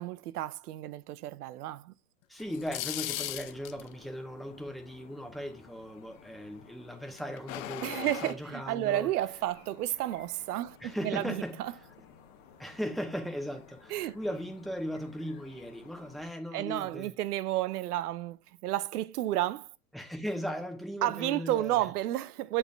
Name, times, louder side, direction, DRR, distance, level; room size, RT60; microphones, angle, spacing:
voice 1, 0.0-1.9 7.8-11.7 13.9-14.1 16.5-18.4 18.6-19.7 21.0-22.6, right 14 dB, 80° right, 0.6 m, -31 dB
voice 2, 2.3-9.1 10.8-11.6 12.6-17.2 19.9-21.8, equal, ahead, 0.7 m, -38 dB
sound 1, 2.4-3.9 7.2-8.3, left 14 dB, 60° left, 0.7 m, -37 dB
sound 2, 2.4-16.2, left 7 dB, 45° left, 1.2 m, -56 dB
7.0 x 4.3 x 3.4 m
hypercardioid pair, 125°, 45 cm